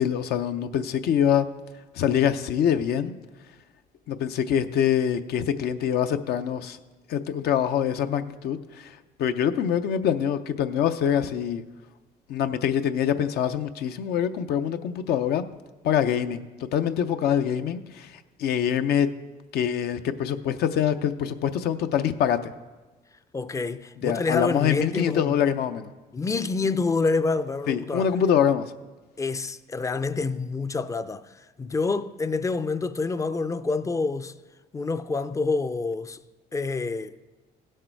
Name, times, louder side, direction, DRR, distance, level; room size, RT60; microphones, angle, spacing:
voice 1, 0.0-1.4 1.9-3.1 4.1-6.8 7.1-11.6 12.3-15.4 15.8-19.1 19.5-22.4 24.0-25.9 27.7-28.6, left 9 dB, 70° left, 0.6 m, -24 dB
voice 2, 23.3-25.4 26.1-28.1 29.2-34.3 34.7-36.2 36.5-37.2, left 4 dB, 20° left, 0.4 m, -27 dB
16.0 x 6.5 x 4.5 m
cardioid pair, 110°, 17 cm